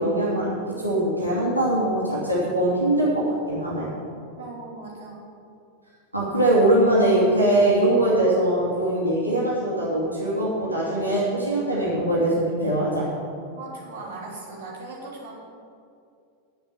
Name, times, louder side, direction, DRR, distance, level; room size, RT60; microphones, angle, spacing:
voice 1, 0.0-3.9 6.1-13.1, right 1 dB, 90° right, -8 dB, 2.7 m, -22 dB
voice 2, 4.4-5.3 13.5-15.3, right 3 dB, 55° right, -5 dB, 3.2 m, -38 dB
10.0 x 7.3 x 7.1 m, 2.4 s
figure-of-eight pair, 90°, 0 cm